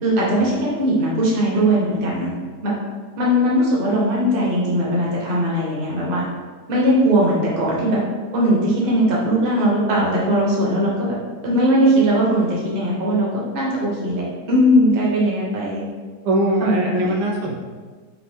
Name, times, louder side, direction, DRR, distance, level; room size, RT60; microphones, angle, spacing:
voice 1, 0.0-2.3 2.6-2.7 3.2-6.2 6.7-8.0 8.3-11.1 11.4-13.3 13.5-15.8 16.6-17.1, equal, 40° right, -5 dB, 0.9 m, -19 dB
voice 2, 16.2-17.6, right 1 dB, 85° right, -1 dB, 1.2 m, -21 dB
4.1 x 2.7 x 3.4 m, 1.4 s
omnidirectional pair, 1.8 m